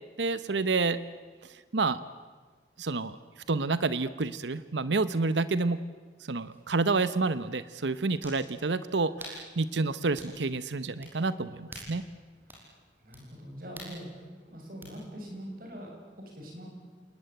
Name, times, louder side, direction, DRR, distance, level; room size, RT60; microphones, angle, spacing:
voice 1, 0.2-1.0 1.4-2.0 2.8-3.2 3.5-5.8 6.2-12.0, right 3 dB, 80° right, 14 dB, 0.8 m, -29 dB
sound 1, 6.5-6.6 8.2-8.5 9.2-9.5 10.2-10.4 11.0-11.2 11.7-12.0 12.5-12.7 13.1-13.2 13.8-14.0 14.8-14.9, equal, 10° right, 6.4 m, -45 dB
voice 2, 12.5-16.7, equal, 50° right, 1 dB, 7.7 m, -44 dB
29.0 x 19.5 x 9.1 m, 1.4 s
head